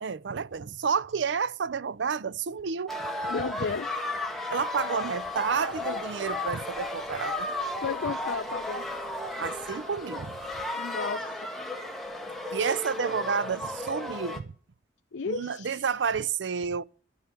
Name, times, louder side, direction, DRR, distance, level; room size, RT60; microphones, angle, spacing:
voice 1, 0.0-3.1 4.5-7.5 9.4-10.4 12.5-14.6 15.3-16.8, right 6 dB, 80° right, 0.5 m, -30 dB
sound 1, 2.9-14.4, left 1 dB, ahead, 1.5 m, -34 dB
voice 2, 3.2-3.9 7.8-8.8 10.8-11.5 15.1-15.8, left 5 dB, 85° left, 0.5 m, -33 dB
sound 2, 5.1-10.7, equal, 30° right, 5.4 m, -56 dB
12.5 x 7.1 x 8.9 m
head